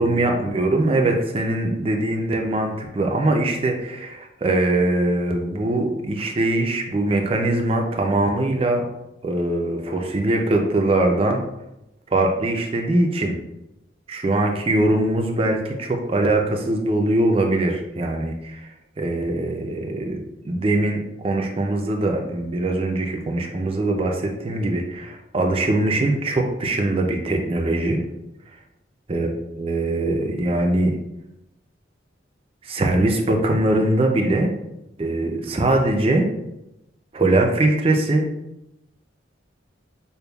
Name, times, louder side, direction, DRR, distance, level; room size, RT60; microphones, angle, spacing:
voice 1, 0.0-8.8 9.2-11.4 12.1-13.4 14.1-18.7 19.0-20.2 20.4-28.0 29.1-30.9 32.6-34.5 35.0-36.3 37.1-38.2, right 2 dB, 30° right, 3 dB, 0.4 m, -22 dB
6.6 x 2.2 x 2.3 m, 0.91 s
head